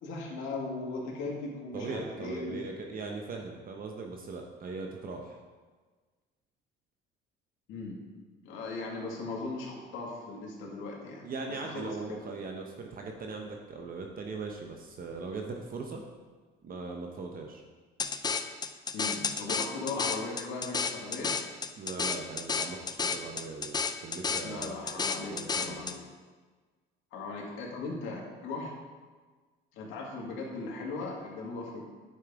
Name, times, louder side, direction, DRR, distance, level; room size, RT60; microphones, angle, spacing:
voice 1, 0.0-2.6 7.7-8.0 8.4-11.3 11.6-12.2 18.9-21.4 24.4-26.0 27.1-28.7 29.7-31.8, left 3 dB, 75° left, -2 dB, 2.0 m, -38 dB
voice 2, 1.7-5.4 11.2-16.0 16.6-17.6 21.8-24.7 25.1-25.8, right 4 dB, 45° right, 2 dB, 0.9 m, -40 dB
sound 1, 18.0-26.0, left 5 dB, 20° left, 0.4 m, -32 dB
9.7 x 5.5 x 3.6 m, 1.4 s
cardioid pair, 105°, 20 cm